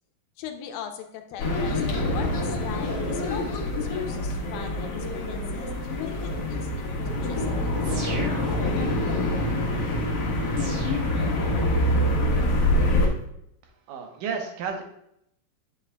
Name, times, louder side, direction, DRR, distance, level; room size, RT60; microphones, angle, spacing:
voice 1, 0.4-7.9, left 8 dB, 85° left, 5 dB, 2.5 m, -40 dB
sound 1, 1.4-13.1, left 1 dB, 55° left, 1.9 m, -25 dB
sound 2, 7.8-9.1 10.6-11.9, right 1 dB, 60° right, 4.1 m, -38 dB
voice 2, 13.6-14.8, right 5 dB, 80° right, 3 dB, 2.5 m, -32 dB
9.7 x 7.4 x 2.2 m, 0.77 s
omnidirectional pair, 3.9 m